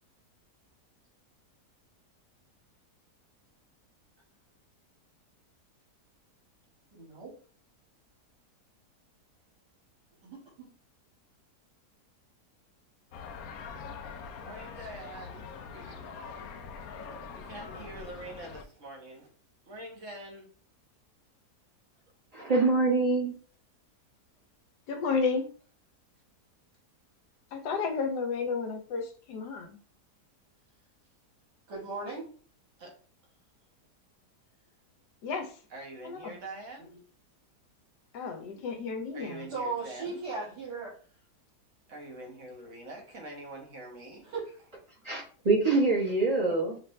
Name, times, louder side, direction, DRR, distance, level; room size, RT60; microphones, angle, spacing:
voice 1, 6.9-7.4 10.2-10.7 31.7-32.3 39.5-40.9 44.1-44.5, right 4 dB, 85° right, 2.2 m, -37 dB
sound 1, 13.1-18.6, left 5 dB, 70° left, 0.9 m, -43 dB
voice 2, 14.4-16.2 17.3-19.3 19.7-20.5 32.8-33.0 35.7-36.9 39.1-40.2 41.9-44.3, right 2 dB, 50° right, 1.5 m, -45 dB
voice 3, 22.3-23.3 45.0-46.8, right 3 dB, 25° right, 1.1 m, -25 dB
voice 4, 24.9-25.5 27.5-29.8 35.2-35.6 36.0-36.4 38.1-39.5, left 5 dB, 85° left, 1.4 m, -32 dB
5.8 x 2.5 x 3.2 m
omnidirectional pair, 1.7 m